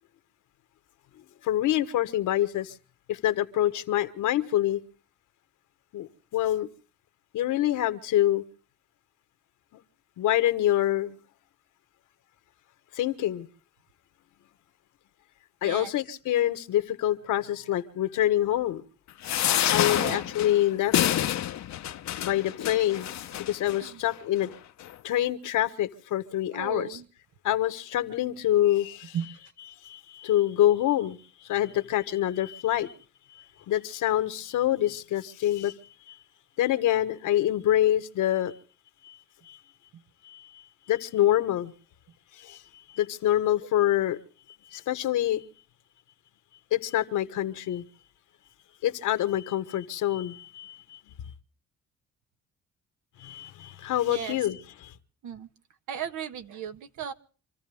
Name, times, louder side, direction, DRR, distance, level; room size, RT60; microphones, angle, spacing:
voice 1, 1.4-2.7 3.1-4.8 5.9-6.7 7.3-8.4 9.7-9.8 10.2-11.1 12.9-13.5 15.6-18.8 19.7-21.0 22.2-23.1 23.5-24.5 25.0-27.0 27.4-29.2 29.8-31.2 31.5-32.9 33.3-35.7 36.1-36.2 36.6-38.5 39.0-39.2 39.5-39.6 40.2-40.6 40.9-41.7 42.3-42.6 42.9-44.2 44.7-45.4 46.7-47.8 48.8-51.0 53.2-54.9, left 13 dB, 80° left, 1.4 m, -26 dB
sound 1, 19.2-23.8 24.4-24.5 24.8-24.9, left 11 dB, 65° left, 0.8 m, -28 dB
voice 2, 26.5-27.0 29.1-29.3 54.1-54.4 55.2-55.5 55.9-57.1, right 8 dB, 80° right, 1.5 m, -35 dB
27.0 x 14.5 x 3.5 m
cardioid pair, 90°, 30 cm